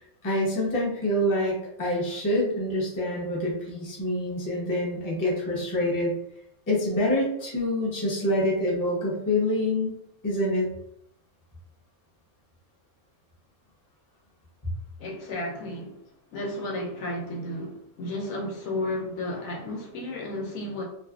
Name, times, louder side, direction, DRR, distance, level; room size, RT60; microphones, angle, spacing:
voice 1, 0.2-6.1 6.7-9.9 10.2-10.7, left 1 dB, 20° left, 0.6 m, -26 dB
voice 2, 15.0-16.0 16.3-20.8, left 1 dB, 75° left, 1.1 m, -33 dB
2.6 x 2.4 x 2.3 m
omnidirectional pair, 1.5 m